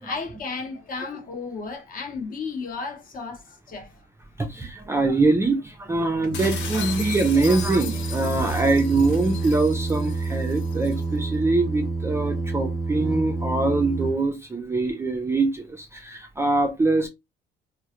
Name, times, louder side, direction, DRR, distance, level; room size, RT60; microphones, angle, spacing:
voice 1, 0.0-3.9, left 4 dB, 45° left, 0.7 m, -34 dB
voice 2, 4.4-17.1, right 3 dB, 15° right, 0.3 m, -23 dB
Singing, 6.2-14.1, right 3 dB, 5° left, 0.8 m, -28 dB
sound 1, 6.3-11.0, left 7 dB, 85° left, 0.9 m, -37 dB
2.2 x 2.0 x 2.8 m
cardioid pair, 135°, 19 cm